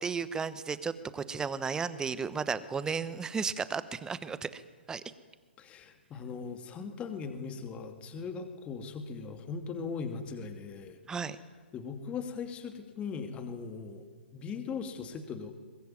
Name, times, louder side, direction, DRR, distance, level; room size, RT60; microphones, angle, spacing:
voice 1, 0.0-4.6 4.9-5.0 11.1-11.4, right 5 dB, 10° right, 15 dB, 1.1 m, -34 dB
voice 2, 5.6-11.0 11.7-14.1 14.3-15.5, left 5 dB, 20° left, 7 dB, 2.4 m, -39 dB
23.0 x 21.0 x 9.7 m, 1.5 s
figure-of-eight pair, 125°, 6 cm